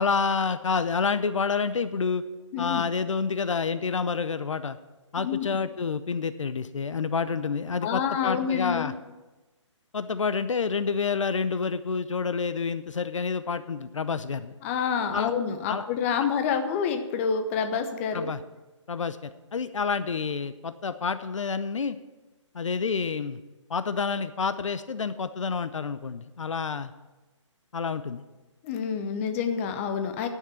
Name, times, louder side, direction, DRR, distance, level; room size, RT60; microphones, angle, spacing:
voice 1, 0.0-2.2 2.6-4.8 5.1-8.9 9.9-14.5 15.1-15.3 15.7-15.8 18.1-18.4 18.9-22.0 22.5-23.4 23.7-26.9 27.7-28.2, left 5 dB, 75° left, 12 dB, 0.7 m, -28 dB
voice 2, 2.5-2.8 5.2-5.6 7.8-8.9 14.6-18.3 28.6-30.3, left 7 dB, 25° left, 8 dB, 0.9 m, -28 dB
10.5 x 6.6 x 8.0 m, 1.2 s
figure-of-eight pair, 145°, 16 cm